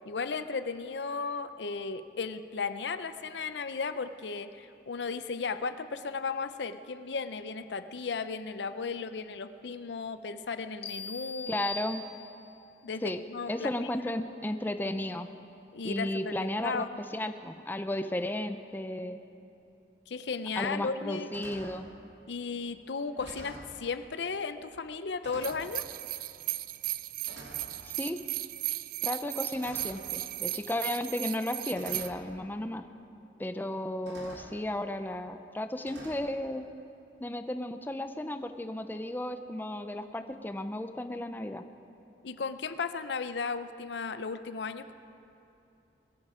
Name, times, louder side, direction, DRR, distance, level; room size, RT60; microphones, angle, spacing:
voice 1, 0.1-11.6 12.8-13.9 15.7-17.0 20.1-21.3 22.3-25.8 42.2-44.9, left 4 dB, 70° left, 11 dB, 0.6 m, -35 dB
sound 1, 10.8-12.6, left 3 dB, 35° left, 1.2 m, -41 dB
voice 2, 11.5-12.0 13.0-13.2 13.5-15.3 15.8-19.2 20.6-21.9 27.8-28.2 29.0-32.8 33.4-36.7 37.2-41.6, left 1 dB, 10° left, 9 dB, 0.5 m, -34 dB
sound 2, 20.2-20.3 20.8-21.1 21.3-21.8 22.6-22.8 23.1-23.8 24.7-24.9 25.2-25.7 26.7-26.9 27.3-27.7 29.5-30.1 31.2-31.3 31.8-32.2 33.4-33.5 34.1-34.5 35.9-36.2, right 1 dB, 85° right, 2.4 m, -47 dB
sound 3, 25.4-32.1, right 16 dB, 55° right, 0.4 m, -36 dB
21.5 x 13.0 x 4.9 m, 2.8 s
head